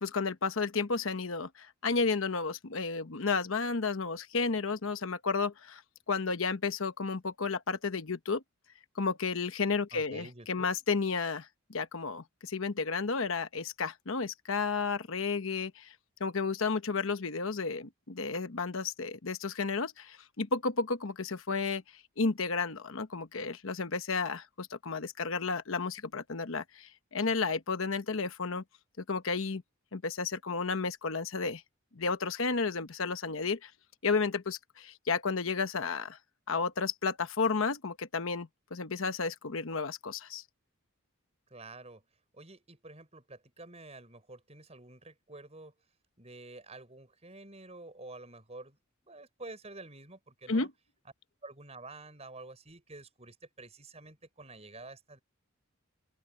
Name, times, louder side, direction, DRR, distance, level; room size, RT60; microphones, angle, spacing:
voice 1, 0.0-5.8 6.1-8.4 9.0-15.9 16.2-28.6 29.1-29.6 29.9-31.6 31.9-33.7 34.0-36.2 36.5-40.4 50.5-50.7, left 4 dB, 65° left, 1.0 m, -32 dB
voice 2, 9.9-10.7 41.5-42.0 42.3-45.7 46.2-48.8 49.0-50.7 51.4-55.2, right 2 dB, 30° right, 5.9 m, -49 dB
open air
head